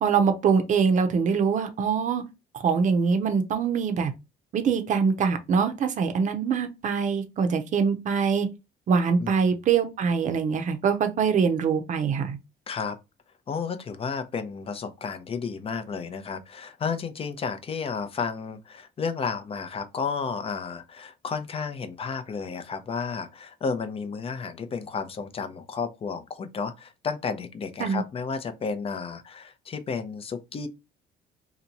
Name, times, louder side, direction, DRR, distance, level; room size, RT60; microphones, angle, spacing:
voice 1, 0.0-2.2 2.6-4.1 4.5-8.5 8.9-12.4 27.8-28.0, right 6 dB, 45° right, 0.7 m, -23 dB
voice 2, 9.2-9.6 12.7-13.0 13.5-30.7, left 5 dB, 35° left, 0.6 m, -32 dB
2.9 x 2.2 x 3.9 m
cardioid pair, 110°, 17 cm